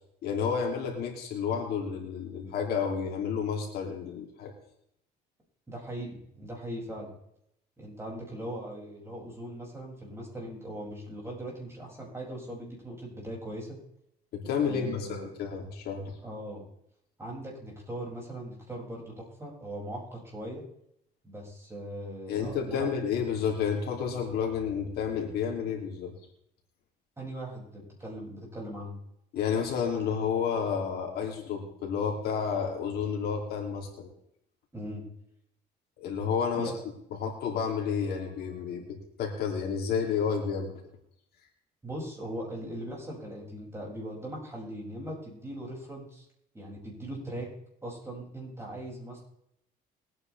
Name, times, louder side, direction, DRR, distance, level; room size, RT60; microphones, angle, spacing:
voice 1, 0.2-4.5 14.3-16.1 22.3-26.1 29.3-34.1 36.0-36.7 37.2-40.7, left 6 dB, 70° left, 1 dB, 3.1 m, -31 dB
voice 2, 5.7-7.1 7.8-13.8 14.6-15.3 16.2-16.6 17.2-20.6 21.2-22.9 27.2-28.9 34.7-35.0 36.5-36.7 41.8-46.2 46.5-47.5 47.8-49.2, right 1 dB, 15° right, -3 dB, 6.6 m, -39 dB
22.0 x 9.4 x 3.5 m, 0.74 s
cardioid pair, 110°, 17 cm